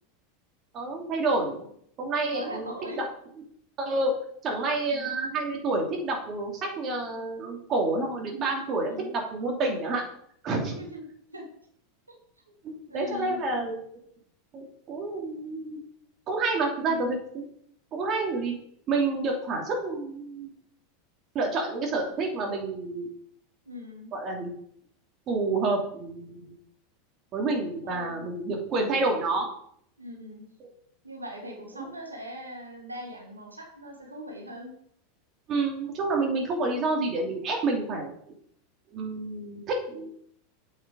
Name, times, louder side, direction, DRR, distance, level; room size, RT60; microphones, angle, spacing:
voice 1, 0.7-1.7 2.0-3.0 3.8-4.1 4.4-10.0 10.4-10.7 12.6-13.8 14.5-15.8 16.3-17.2 17.9-18.5 18.9-20.5 21.3-23.1 24.1-24.5 25.3-26.5 27.3-29.5 31.8-31.9 35.5-38.1 38.9-40.1, right 3 dB, 35° right, 0 dB, 2.9 m, -29 dB
voice 2, 2.2-3.0 4.9-5.2 8.9-9.1 10.6-11.5 12.1-12.2 12.5-12.6 12.9-13.4 16.8-17.1 23.6-24.1 27.8-28.2 30.0-30.4 31.0-34.7, equal, 85° right, 0 dB, 1.8 m, -40 dB
8.6 x 6.6 x 5.1 m, 0.67 s
figure-of-eight pair, 85°, 0 cm